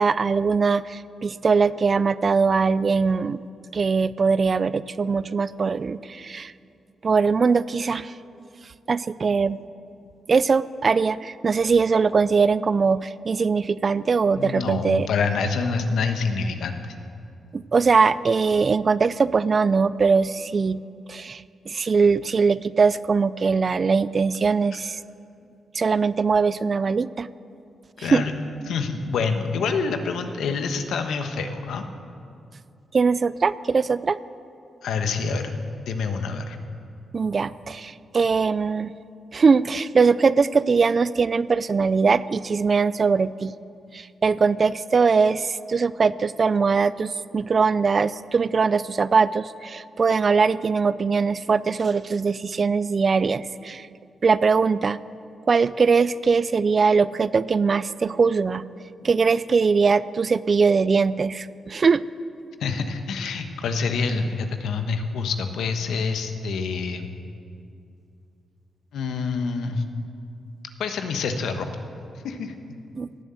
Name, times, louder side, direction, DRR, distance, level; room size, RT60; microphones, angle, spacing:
voice 1, 0.0-3.4 3.7-6.5 7.0-8.1 8.9-9.6 10.3-15.1 17.5-20.8 21.1-25.0 25.8-27.3 28.0-28.2 32.9-34.2 37.1-38.9 39.3-43.5 43.9-53.9 54.2-55.0 55.5-58.6 59.0-62.0 73.0-73.1, right 5 dB, 45° right, 17 dB, 0.4 m, -21 dB
voice 2, 14.3-16.9 24.7-24.8 28.0-28.3 28.7-31.8 34.8-35.5 35.9-36.6 62.6-67.1 68.9-69.8 70.8-71.7 72.2-72.5, left 4 dB, 85° left, 7 dB, 1.2 m, -26 dB
16.5 x 7.8 x 9.0 m, 2.5 s
cardioid pair, 80°, 0 cm